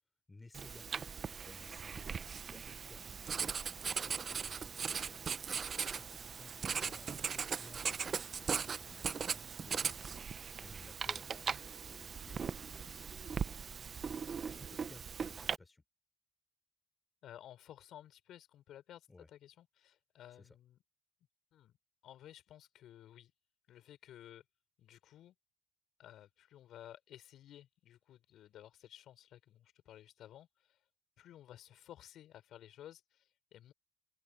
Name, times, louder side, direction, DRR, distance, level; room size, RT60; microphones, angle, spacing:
voice 1, 0.3-10.3 10.6-13.9 14.4-15.8 19.1-19.3 20.4-20.6, left 3 dB, 20° left, 4.5 m, -59 dB
Writing, 0.5-15.6, right 6 dB, 45° right, 0.8 m, -39 dB
voice 2, 17.2-20.8 21.5-21.7 22.0-23.3 23.7-24.4 24.8-25.3 26.0-30.8 31.2-33.7, left 11 dB, 80° left, 5.8 m, -55 dB
open air
cardioid pair, 90°, 0 cm